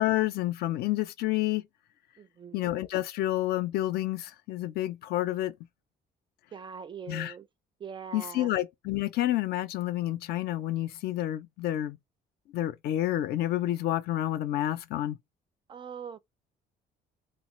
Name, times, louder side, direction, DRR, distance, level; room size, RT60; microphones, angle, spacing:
voice 1, 0.0-1.6 2.5-5.5 7.1-7.3 8.1-12.0 12.5-15.2, left 14 dB, 70° left, 0.4 m, -29 dB
voice 2, 2.2-2.7 6.5-7.5 7.8-8.5 15.7-16.2, right 6 dB, 30° right, 0.3 m, -42 dB
3.5 x 2.5 x 3.0 m
cardioid pair, 110°, 17 cm